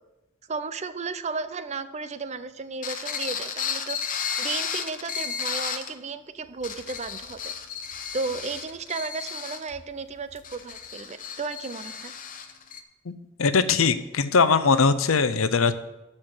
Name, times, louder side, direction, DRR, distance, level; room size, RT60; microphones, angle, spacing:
voice 1, 0.5-4.0 4.4-7.5 8.1-12.1, right 4 dB, 35° right, 12 dB, 0.5 m, -34 dB
sound 1, 2.8-5.9 6.5-12.8, left 7 dB, 40° left, 0.9 m, -33 dB
voice 2, 13.4-15.7, left 5 dB, 80° left, 13 dB, 0.6 m, -21 dB
13.0 x 4.4 x 7.7 m, 1.0 s
head